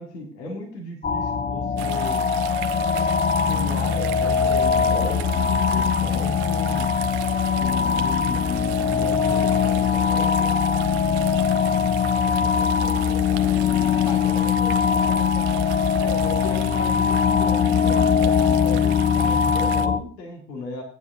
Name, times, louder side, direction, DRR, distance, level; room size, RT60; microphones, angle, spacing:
voice 1, 0.0-2.2 3.4-6.9 7.6-10.6 16.0-20.8, left 3 dB, 80° left, 1 dB, 1.9 m, -35 dB
sound 1, 1.0-20.0, left 6 dB, 20° left, 0.6 m, -21 dB
sound 2, 1.8-19.9, right 14 dB, 65° right, 0.8 m, -38 dB
voice 2, 12.4-15.8, left 6 dB, 55° left, 1 dB, 1.7 m, -40 dB
16.0 x 9.3 x 2.6 m, 0.41 s
figure-of-eight pair, 55°, 48 cm